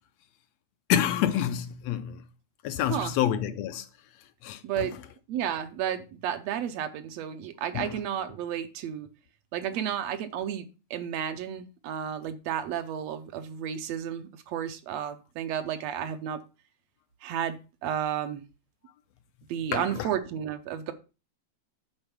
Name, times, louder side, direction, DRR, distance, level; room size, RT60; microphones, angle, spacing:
voice 1, 0.9-2.2 2.6-3.9 4.4-4.9 7.7-8.0 19.7-20.1, left 10 dB, 75° left, 1.6 m, -28 dB
voice 2, 4.6-5.0 5.3-9.1 9.5-10.7 10.9-16.4 17.2-18.4 19.5-20.9, right 9 dB, 70° right, 1.8 m, -32 dB
8.8 x 4.5 x 6.0 m
omnidirectional pair, 3.4 m